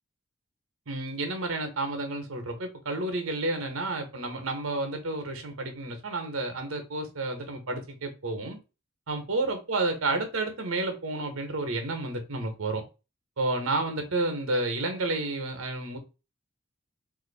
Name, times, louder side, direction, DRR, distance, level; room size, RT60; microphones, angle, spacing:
voice 1, 0.9-8.6 9.1-12.8 13.4-16.0, right 2 dB, 80° right, 6 dB, 1.0 m, -30 dB
2.8 x 2.5 x 4.0 m, 0.29 s
head